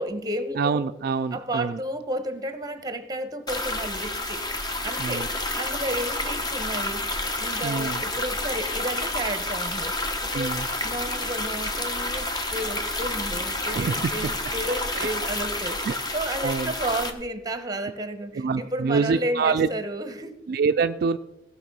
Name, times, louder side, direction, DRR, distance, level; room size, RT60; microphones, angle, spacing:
voice 1, 0.0-0.9 1.3-4.4 4.8-5.3 5.6-7.1 7.4-10.0 10.2-15.9 16.1-20.3, right 1 dB, 20° right, 10 dB, 1.0 m, -32 dB
voice 2, 0.6-1.8 5.0-5.3 7.6-8.0 10.3-10.7 13.7-14.1 14.9-15.1 15.9-16.0 16.4-16.7 18.3-19.7 20.5-21.2, right 5 dB, 55° right, 9 dB, 0.3 m, -25 dB
sound 1, 3.5-17.1, left 2 dB, 25° left, 1.2 m, -29 dB
16.5 x 6.5 x 5.4 m, 1.0 s
head